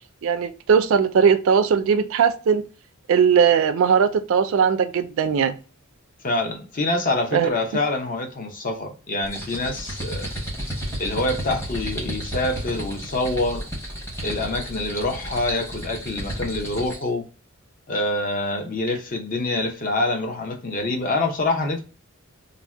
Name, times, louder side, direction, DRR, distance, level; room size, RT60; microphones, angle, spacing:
voice 1, 0.2-2.6 3.1-5.6 7.3-7.8, right 6 dB, 65° right, 0.3 m, -19 dB
voice 2, 6.2-10.3 11.0-13.6 14.2-17.3 17.9-21.8, left 2 dB, 40° left, 0.6 m, -26 dB
sound 1, 9.2-17.1, equal, 10° left, 0.8 m, -32 dB
2.6 x 2.1 x 3.3 m
head